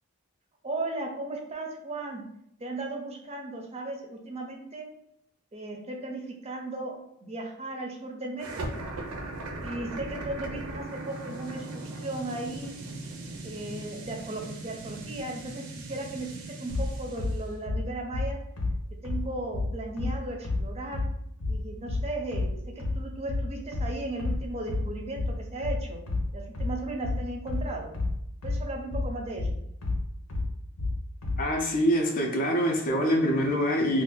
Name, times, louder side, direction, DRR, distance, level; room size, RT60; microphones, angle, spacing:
voice 1, 0.6-2.2 2.6-4.9 5.5-6.9 7.2-8.5 8.8-8.9 9.6-12.7 13.4-18.4 19.0-21.0 21.5-26.0 26.3-27.9 28.4-29.6, right 2 dB, 30° right, 2 dB, 0.5 m, -36 dB
sound 1, 8.4-17.5, right 2 dB, 85° right, 0.6 m, -39 dB
sound 2, 16.7-31.5, left 2 dB, 85° left, 0.8 m, -30 dB
voice 2, 31.4-34.0, equal, 40° left, 1 dB, 0.5 m, -25 dB
2.7 x 2.3 x 3.7 m, 0.76 s
head